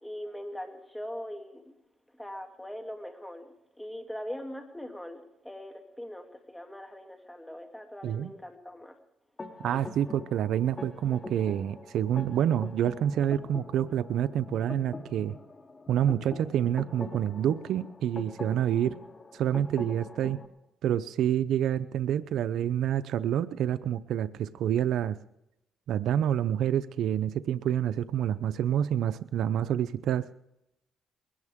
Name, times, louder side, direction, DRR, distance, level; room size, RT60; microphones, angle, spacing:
voice 1, 0.0-1.7 2.1-9.0, equal, 5° left, 4 dB, 2.7 m, -41 dB
sound 1, 9.4-20.5, left 2 dB, 30° left, 2.4 m, -43 dB
voice 2, 9.6-15.3 15.9-18.9 19.3-20.4 20.8-25.2 25.9-30.3, right 10 dB, 75° right, 12 dB, 0.6 m, -28 dB
21.0 x 17.5 x 3.6 m, 0.86 s
cardioid pair, 90°, 0 cm